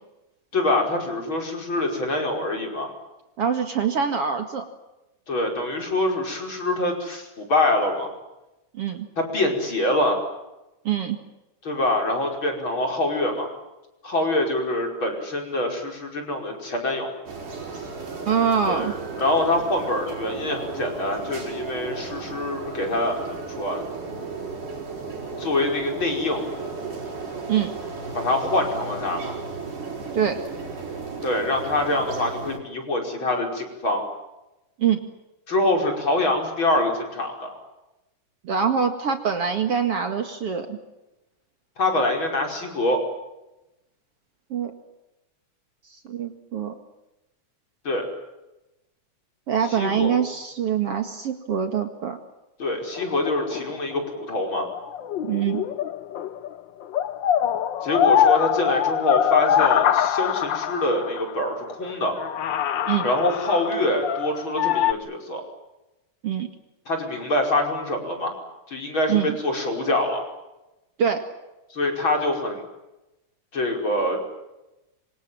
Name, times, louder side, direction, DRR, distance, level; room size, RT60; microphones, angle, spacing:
voice 1, 0.5-2.9 5.3-8.1 9.3-10.2 11.6-13.5 14.0-17.1 18.7-18.9 19.2-23.8 25.4-26.5 28.1-29.3 31.2-34.0 35.5-37.6 41.8-43.0 47.8-48.0 49.7-50.2 52.6-54.7 57.8-62.1 63.0-65.4 66.9-68.3 68.7-70.2 71.7-72.6 73.5-74.2, left 2 dB, 40° left, 2 dB, 6.0 m, -25 dB
voice 2, 3.4-4.7 8.7-9.1 10.8-11.2 18.3-18.9 27.5-27.7 30.1-30.4 34.8-35.0 38.4-40.8 44.5-44.7 46.1-46.8 49.5-52.2 55.2-55.6 62.9-63.1 66.2-66.5 69.1-69.4 71.0-71.2, right 7 dB, 50° right, 6 dB, 2.7 m, -24 dB
sound 1, 17.3-32.6, right 4 dB, 90° right, 6.9 m, -34 dB
sound 2, 53.0-56.5 56.8-61.3 61.9-62.0 62.2-64.9, left 9 dB, 70° left, 1.1 m, -23 dB
26.5 x 26.0 x 7.7 m, 0.98 s
omnidirectional pair, 3.5 m